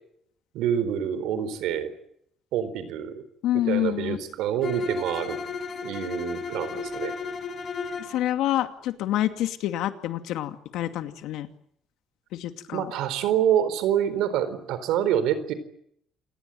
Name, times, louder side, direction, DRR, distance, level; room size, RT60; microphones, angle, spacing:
voice 1, 0.5-1.9 2.5-3.2 3.7-5.4 5.8-7.2 12.7-15.5, right 9 dB, 90° right, 14 dB, 4.1 m, -26 dB
voice 2, 3.4-4.2 8.1-11.5 12.3-12.9, left 13 dB, 85° left, 8 dB, 2.4 m, -27 dB
Bowed string instrument, 4.6-8.2, left 5 dB, 35° left, 5.2 m, -34 dB
28.5 x 19.0 x 9.1 m, 0.70 s
cardioid pair, 135°, 0 cm